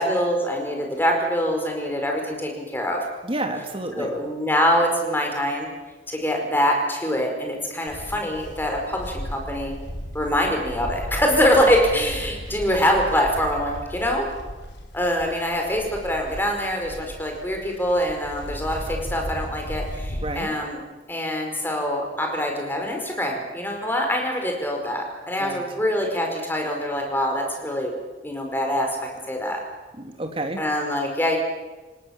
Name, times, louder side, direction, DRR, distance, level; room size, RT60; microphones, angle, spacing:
voice 1, 0.0-3.0 3.9-5.7 6.1-9.7 10.1-14.3 14.9-20.8 21.1-27.9 28.2-28.9 29.3-29.6 30.6-31.4, equal, 10° left, 2 dB, 5.1 m, -24 dB
voice 2, 3.2-4.1 20.2-20.6 25.4-25.6 30.0-30.6, right 1 dB, 30° right, 4 dB, 3.0 m, -30 dB
Livestock farm animals working animals, 7.9-20.3, equal, 75° left, 4.7 m, -36 dB
29.0 x 18.5 x 7.4 m, 1.2 s
head